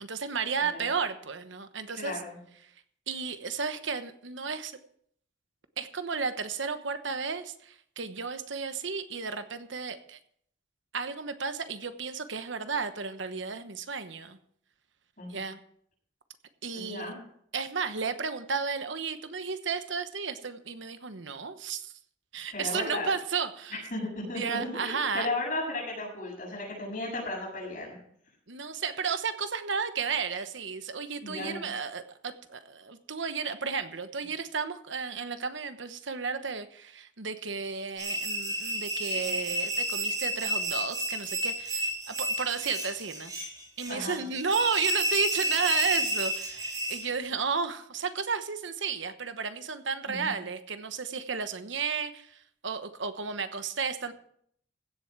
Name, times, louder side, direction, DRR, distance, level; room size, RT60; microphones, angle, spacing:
voice 1, 0.0-2.2 3.1-4.8 5.8-10.2 10.9-14.4 15.3-15.6 16.6-17.1 17.5-21.9 22.3-23.8 24.3-25.3 28.5-43.3 43.8-54.1, right 5 dB, 75° right, 10 dB, 1.1 m, -33 dB
voice 2, 1.9-2.4 15.2-15.4 16.7-17.2 22.5-23.1 23.9-28.0 31.2-31.6 39.2-39.4 43.9-44.2 50.1-50.3, left 2 dB, 40° left, -2 dB, 7.4 m, -35 dB
sound 1, 38.0-47.1, right 1 dB, 20° right, 3.8 m, -31 dB
16.0 x 7.8 x 6.1 m, 0.65 s
head